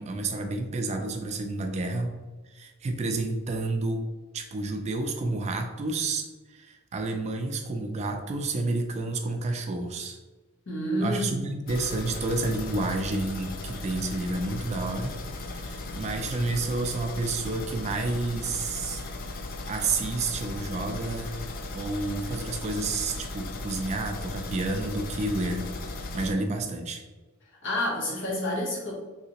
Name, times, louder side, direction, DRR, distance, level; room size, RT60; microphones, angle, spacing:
voice 1, 0.0-2.1 2.5-4.1 4.3-10.2 11.0-15.2 15.5-19.0 19.7-25.7 26.1-27.0, right 2 dB, 30° right, 5 dB, 0.3 m, -30 dB
voice 2, 10.7-11.5 27.6-28.9, left 1 dB, 60° left, -3 dB, 1.0 m, -29 dB
sound 1, 11.7-26.3, left 2 dB, 45° left, 0.3 m, -37 dB
3.2 x 2.8 x 2.8 m, 1.2 s
head